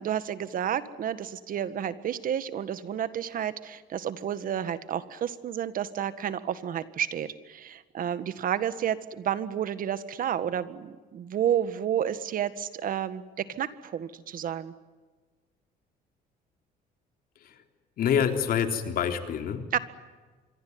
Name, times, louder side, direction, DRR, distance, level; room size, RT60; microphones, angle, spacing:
voice 1, 0.0-14.7 19.7-19.8, right 9 dB, 55° right, 13 dB, 1.8 m, -31 dB
voice 2, 18.0-19.8, left 8 dB, 60° left, 6 dB, 3.6 m, -27 dB
26.0 x 23.0 x 9.6 m, 1.4 s
cardioid pair, 110°, 17 cm